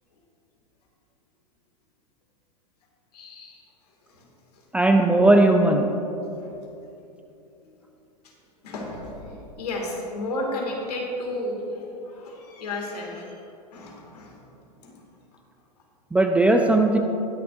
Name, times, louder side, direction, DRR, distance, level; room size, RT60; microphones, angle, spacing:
voice 1, 3.1-3.6 4.1-4.3 4.5-4.6 6.4-6.6 7.6-7.8 8.6-13.4 13.7-14.4 14.8-15.0, left 1 dB, 65° left, -1 dB, 2.2 m, -33 dB
voice 2, 4.7-5.9 16.1-17.0, right 2 dB, 5° right, 4 dB, 0.4 m, -17 dB
19.5 x 6.8 x 2.6 m, 2.9 s
figure-of-eight pair, 100°, 21 cm